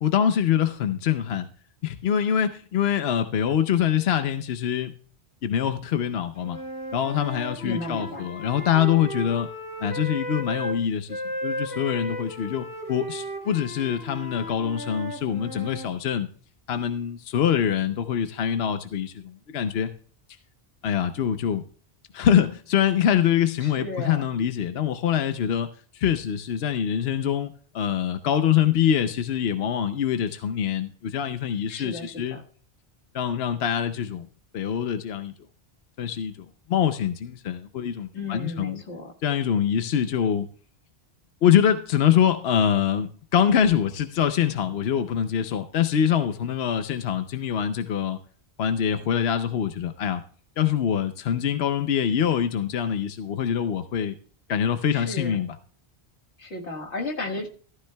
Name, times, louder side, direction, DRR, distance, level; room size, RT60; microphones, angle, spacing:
voice 1, 0.0-1.5 1.8-4.9 5.4-6.6 6.9-9.5 9.8-16.3 16.7-19.9 20.8-21.6 22.1-25.7 25.9-32.4 33.1-34.3 34.5-35.3 36.0-38.8 39.2-40.5 41.4-48.2 48.6-50.2 50.6-54.2 54.5-55.6, left 9 dB, 70° left, 9 dB, 0.9 m, -24 dB
Wind instrument woodwind instrument, 6.4-10.8 11.1-15.9, equal, 10° right, 2.8 m, -35 dB
voice 2, 7.6-8.3 23.6-24.2 31.7-32.4 38.1-39.1 54.9-55.4 56.4-57.5, left 2 dB, 85° left, 1 dB, 1.8 m, -34 dB
15.0 x 13.0 x 2.2 m, 0.44 s
omnidirectional pair, 1.1 m